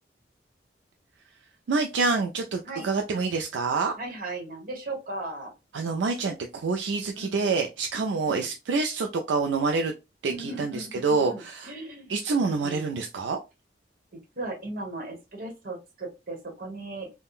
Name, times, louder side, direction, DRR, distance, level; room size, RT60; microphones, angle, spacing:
voice 1, 1.7-3.9 5.7-9.9 10.2-11.7 12.1-13.4, right 4 dB, 80° right, 4 dB, 0.4 m, -27 dB
voice 2, 4.0-5.5 7.1-7.7 8.3-8.5 10.3-13.0 14.1-17.1, right 2 dB, 55° right, 2 dB, 1.1 m, -37 dB
3.6 x 2.1 x 2.4 m, 0.25 s
head